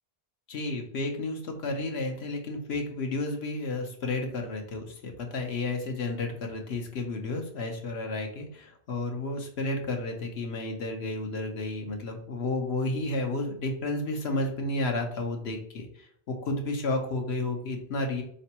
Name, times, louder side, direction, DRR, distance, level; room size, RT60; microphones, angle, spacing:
voice 1, 0.5-18.2, left 2 dB, 85° left, 3 dB, 1.1 m, -32 dB
4.3 x 3.2 x 2.9 m, 0.66 s
omnidirectional pair, 1.0 m